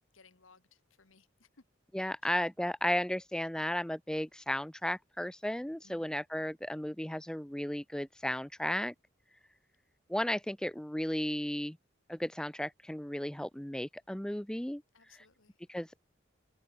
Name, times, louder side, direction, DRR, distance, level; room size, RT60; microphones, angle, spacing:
voice 1, 0.1-1.6 2.2-2.4 5.8-6.2 14.9-15.6, left 4 dB, 85° left, 1.9 m, -63 dB
voice 2, 1.9-8.9 10.1-11.8 12.1-14.8 15.1-15.3 15.7-15.9, left 1 dB, 5° left, 0.4 m, -34 dB
open air
head